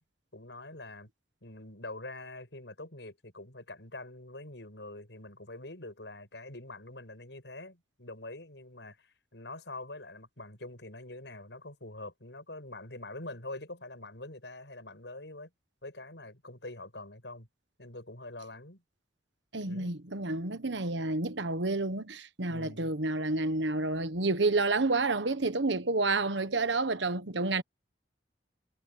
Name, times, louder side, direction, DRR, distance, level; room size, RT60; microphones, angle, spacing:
voice 1, 0.3-1.1 1.4-15.5 15.8-17.5 17.8-18.8 19.7-20.0 22.5-22.9, left 2 dB, 75° left, 7.0 m, -45 dB
voice 2, 19.5-27.6, right 3 dB, 80° right, 1.4 m, -29 dB
head